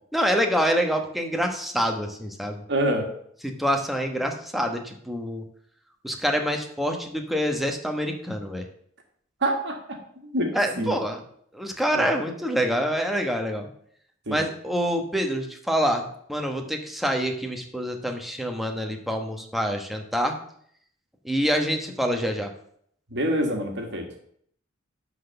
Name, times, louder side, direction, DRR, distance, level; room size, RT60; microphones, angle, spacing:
voice 1, 0.1-2.6 3.4-5.4 6.0-8.6 10.5-11.2 11.5-13.7 14.3-20.4 21.2-22.5, equal, ahead, 3 dB, 1.2 m, -26 dB
voice 2, 2.7-3.1 9.4-10.0 10.3-11.0 11.9-12.1 14.3-14.4 23.1-24.0, right 1 dB, 60° right, 2 dB, 1.7 m, -26 dB
11.0 x 4.1 x 6.7 m, 0.65 s
head